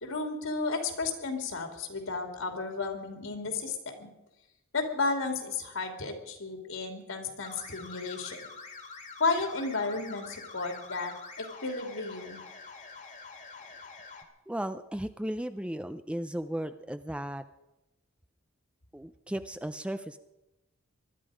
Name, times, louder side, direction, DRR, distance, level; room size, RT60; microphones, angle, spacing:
voice 1, 0.0-4.1 4.7-8.5 9.2-11.1 11.6-12.4, left 3 dB, 70° left, 4 dB, 2.9 m, -33 dB
sound 1, 7.4-14.2, left 4 dB, 35° left, 1.9 m, -46 dB
voice 2, 14.5-17.4 18.9-20.2, right 1 dB, 5° right, 10 dB, 0.4 m, -35 dB
20.5 x 12.5 x 5.0 m, 0.95 s
head